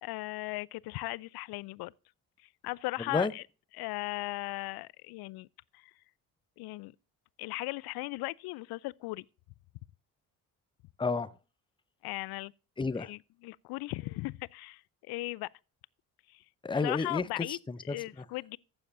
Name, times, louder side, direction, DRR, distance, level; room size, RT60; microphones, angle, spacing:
voice 1, 0.0-1.9 2.6-3.4 3.8-5.5 5.7-5.9 6.6-6.9 7.4-9.2 12.0-12.5 13.1-13.2 13.4-14.8 15.1-15.5 16.3-16.4 16.8-17.6 17.9-18.6, left 21 dB, 55° left, 0.5 m, -37 dB
voice 2, 3.0-3.3 11.0-11.4 12.8-13.1 16.6-18.3, left 4 dB, 10° left, 0.7 m, -31 dB
15.0 x 7.1 x 2.6 m
hypercardioid pair, 45°, 45 cm